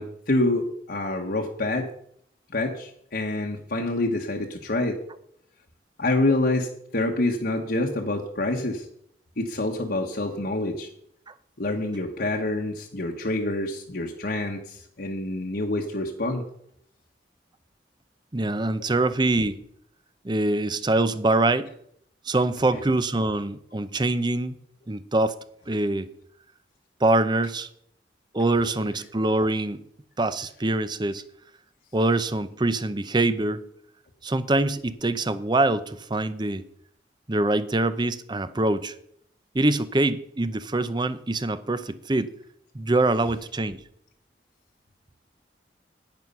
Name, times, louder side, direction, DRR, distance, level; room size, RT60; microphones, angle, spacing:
voice 1, 0.0-1.9 2.5-5.0 6.0-8.8 9.4-10.9 11.6-16.4 18.8-18.9 22.7-22.9 28.6-28.8, left 2 dB, 60° left, 0 dB, 1.2 m, -27 dB
voice 2, 18.3-19.6 20.2-21.7 22.3-24.6 24.9-25.3 25.7-26.1 27.0-27.7 28.3-29.8 30.2-31.2 31.9-33.6 34.2-36.6 37.3-38.9 39.5-42.3 42.7-43.8, right 2 dB, 25° right, 13 dB, 0.7 m, -24 dB
10.5 x 9.4 x 5.5 m, 0.69 s
head